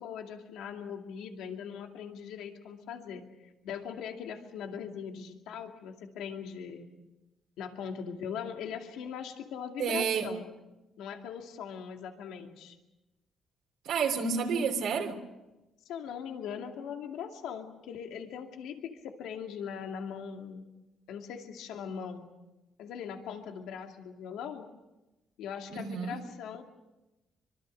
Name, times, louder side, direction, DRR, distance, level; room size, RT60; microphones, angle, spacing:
voice 1, 0.0-6.9 7.6-10.5 11.0-12.8 15.9-20.7 21.1-22.2 22.8-24.7 25.4-26.6, left 7 dB, 90° left, 4 dB, 2.4 m, -40 dB
voice 2, 9.8-10.3 13.8-15.2 25.8-26.2, right 6 dB, 80° right, 1 dB, 3.2 m, -29 dB
25.0 x 24.0 x 6.5 m, 1.0 s
cardioid pair, 90°, 0 cm